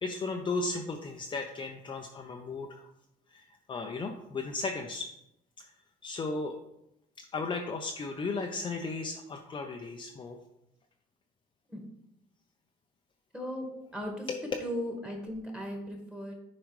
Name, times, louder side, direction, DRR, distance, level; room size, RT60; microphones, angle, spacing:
voice 1, 0.0-2.9 3.3-5.1 5.6-5.7 6.0-6.6 7.2-10.4 14.3-14.4, left 3 dB, 30° left, 2 dB, 0.6 m, -35 dB
voice 2, 13.3-14.3 14.6-16.3, equal, 5° right, 0 dB, 1.7 m, -37 dB
8.0 x 4.9 x 3.2 m, 0.82 s
cardioid pair, 110°, 17 cm